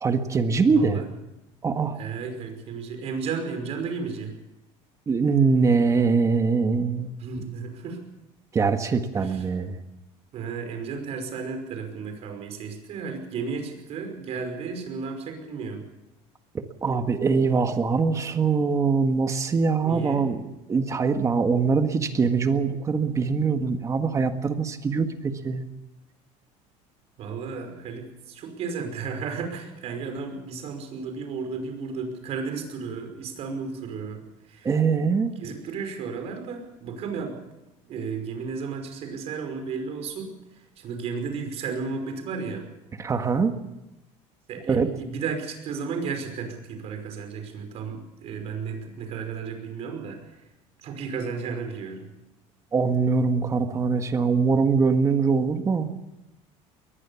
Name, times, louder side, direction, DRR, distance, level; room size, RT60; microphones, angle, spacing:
voice 1, 0.0-1.0 1.6-2.0 5.1-7.1 8.5-9.8 16.5-20.4 20.7-25.7 34.6-35.3 43.0-43.6 44.7-44.9 52.7-55.9, right 5 dB, 20° right, 7 dB, 1.7 m, -23 dB
voice 2, 2.0-4.3 7.2-8.0 9.2-9.4 10.3-15.8 19.8-20.2 27.2-34.7 35.4-37.4 37.8-42.6 44.5-50.4 50.8-52.1, right 5 dB, 50° right, 5 dB, 5.5 m, -33 dB
22.0 x 19.5 x 7.2 m, 0.96 s
cardioid pair, 155°, 14 cm